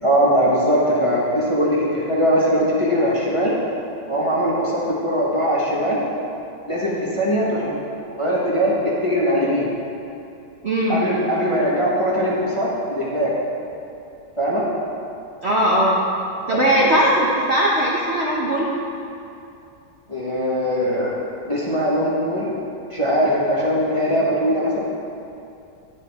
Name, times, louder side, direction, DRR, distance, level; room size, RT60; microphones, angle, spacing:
voice 1, 0.0-3.5 4.1-6.0 6.7-7.7 8.1-9.7 10.9-13.3 14.4-14.7 16.8-16.9 20.1-21.1 21.4-22.6 22.9-25.0, equal, 20° left, -6 dB, 1.0 m, -20 dB
voice 2, 10.6-11.0 15.4-16.0 16.5-18.7, right 1 dB, 50° right, -5 dB, 0.9 m, -19 dB
10.5 x 7.5 x 3.5 m, 2.7 s
omnidirectional pair, 1.9 m